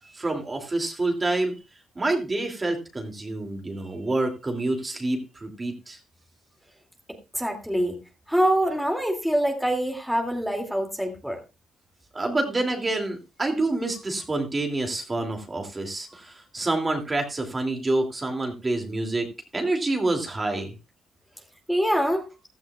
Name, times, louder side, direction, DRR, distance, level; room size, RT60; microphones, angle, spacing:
voice 1, 0.1-1.6 2.0-6.0 12.1-19.3 19.5-20.7, right 2 dB, 25° right, 4 dB, 2.6 m, -27 dB
voice 2, 7.3-7.9 8.3-11.4 21.7-22.3, equal, ahead, 2 dB, 2.4 m, -24 dB
15.5 x 12.5 x 2.4 m, 0.28 s
cardioid pair, 90°, 0 cm